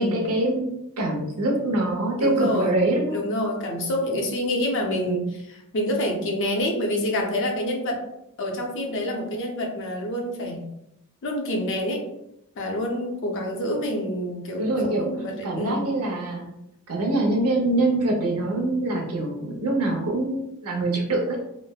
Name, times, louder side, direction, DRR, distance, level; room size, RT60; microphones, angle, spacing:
voice 1, 0.0-3.2 4.9-5.3 14.6-15.0 15.4-16.5 16.9-21.4, right 2 dB, 80° right, 0 dB, 0.7 m, -24 dB
voice 2, 2.0-2.7 3.1-8.0 8.4-10.6 11.2-12.0 12.6-15.9, left 1 dB, 55° left, 2 dB, 0.5 m, -27 dB
3.2 x 2.0 x 2.2 m, 0.82 s
head